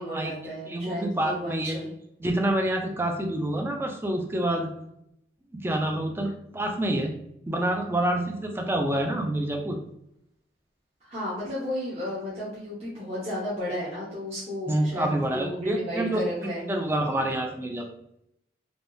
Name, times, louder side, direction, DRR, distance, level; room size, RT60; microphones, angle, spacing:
voice 1, 0.0-1.9 11.1-16.6, left 1 dB, 35° right, -9 dB, 0.8 m, -33 dB
voice 2, 0.7-1.8 2.2-4.7 5.5-7.1 7.5-9.8 14.7-17.8, right 1 dB, 15° right, 3 dB, 0.3 m, -27 dB
3.4 x 2.3 x 2.6 m, 0.78 s
head